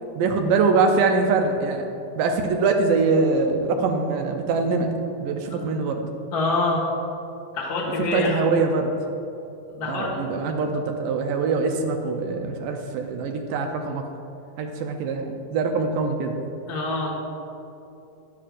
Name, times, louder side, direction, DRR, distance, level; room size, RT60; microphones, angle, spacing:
voice 1, 0.2-4.9 5.2-6.1 8.1-8.9 9.8-14.0 14.6-16.4, right 4 dB, 80° right, 3 dB, 2.3 m, -23 dB
voice 2, 6.3-6.8 7.5-8.4 9.7-10.1 16.7-17.1, left 3 dB, 45° left, -3 dB, 1.4 m, -25 dB
13.0 x 11.0 x 2.5 m, 2.8 s
omnidirectional pair, 3.8 m